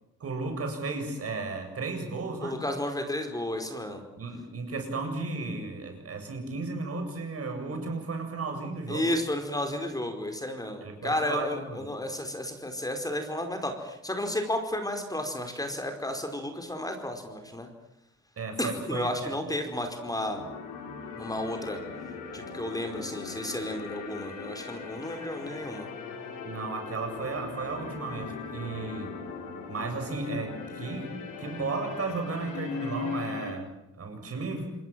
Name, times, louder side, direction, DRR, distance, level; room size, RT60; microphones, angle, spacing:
voice 1, 0.2-2.6 4.2-9.1 10.8-11.9 18.4-19.6 26.4-29.1 29.7-31.1 31.4-34.7, right 3 dB, 50° right, 4 dB, 7.9 m, -34 dB
voice 2, 2.4-4.0 8.9-17.7 18.6-20.4 21.1-21.8 22.3-25.9, left 1 dB, 10° left, 5 dB, 4.8 m, -32 dB
sound 1, 19.8-33.5, left 5 dB, 90° left, 5.7 m, -39 dB
28.0 x 21.5 x 7.6 m, 0.86 s
cardioid pair, 90°, 30 cm